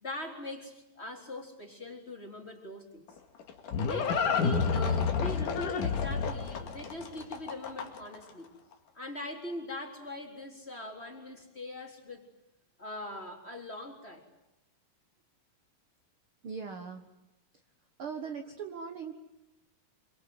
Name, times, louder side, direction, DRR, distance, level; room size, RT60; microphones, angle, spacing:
voice 1, 0.0-3.1 3.8-8.5 8.9-12.2 12.8-14.3, left 1 dB, 20° left, 2 dB, 3.6 m, -41 dB
Livestock farm animals working animals, 3.1-8.2, left 5 dB, 65° left, 3.5 m, -30 dB
voice 2, 16.4-17.1 18.0-19.1, right 6 dB, 50° right, 6 dB, 1.9 m, -39 dB
27.0 x 25.5 x 7.8 m, 0.96 s
omnidirectional pair, 4.0 m